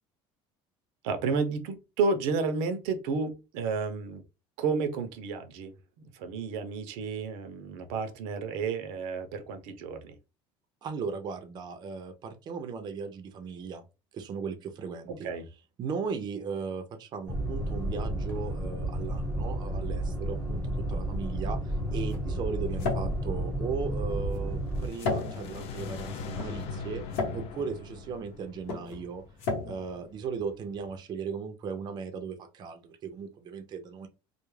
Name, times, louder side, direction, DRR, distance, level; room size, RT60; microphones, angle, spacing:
voice 1, 1.0-4.2 4.6-10.2 15.1-15.5, right 4 dB, 85° right, 0.6 m, -31 dB
voice 2, 10.8-13.9 14.1-15.3 15.8-29.2 29.7-34.1, right 5 dB, 35° right, 0.4 m, -37 dB
sound 1, 17.3-24.9, right 1 dB, 20° left, 1.0 m, -32 dB
sound 2, 21.1-31.0, left 3 dB, 80° left, 0.9 m, -37 dB
sound 3, 24.5-29.7, left 5 dB, 55° left, 0.4 m, -40 dB
2.2 x 2.0 x 3.1 m
cardioid pair, 130°, 12 cm